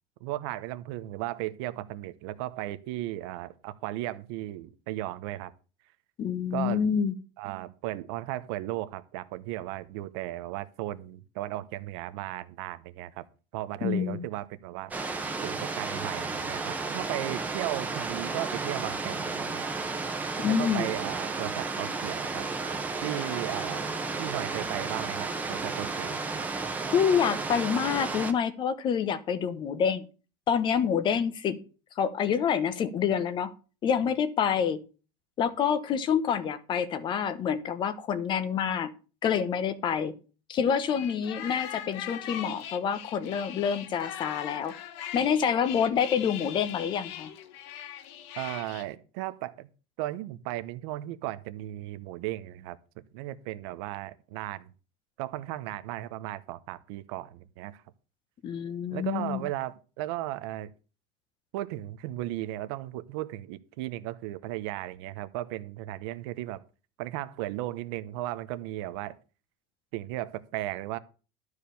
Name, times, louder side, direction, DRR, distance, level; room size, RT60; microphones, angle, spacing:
voice 1, 0.2-5.5 6.5-6.9 7.4-13.2 13.5-14.9 15.4-19.7 20.5-22.5 23.0-26.2 48.4-49.7 50.0-52.8 53.1-54.7 55.2-57.8 58.9-60.7 61.5-66.6 67.0-69.2 69.9-71.0, right 15 dB, 80° right, 0.9 m, -36 dB
voice 2, 6.2-7.1 13.8-14.2 20.4-20.9 26.9-30.0 30.5-31.6 32.0-33.5 33.8-34.8 35.4-38.9 39.2-40.1 40.5-44.7 45.1-47.3 58.4-59.4, left 7 dB, 35° left, 1.0 m, -27 dB
sound 1, 14.9-28.3, right 4 dB, 10° right, 1.1 m, -33 dB
sound 2, 40.9-48.8, left 11 dB, 85° left, 1.3 m, -41 dB
12.5 x 4.9 x 6.9 m
cardioid pair, 155°, 14 cm